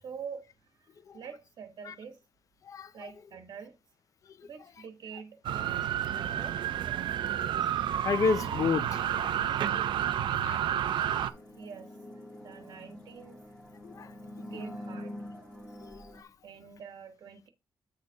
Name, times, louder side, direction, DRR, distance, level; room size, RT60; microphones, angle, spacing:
voice 1, 0.0-2.2 2.9-3.8 4.4-5.7 6.1-6.6 11.5-13.4 14.4-15.2 16.4-17.5, right 6 dB, 65° right, 1.1 m, -46 dB
sound 1, 5.4-11.3, right 10 dB, 90° right, 0.5 m, -30 dB
voice 2, 8.0-9.3 10.4-10.6 13.8-14.1 15.8-16.3, left 5 dB, 45° left, 0.5 m, -30 dB
sound 2, 11.2-16.2, left 1 dB, 10° left, 1.3 m, -45 dB
8.1 x 6.5 x 2.8 m
wide cardioid pair, 175°, 8 cm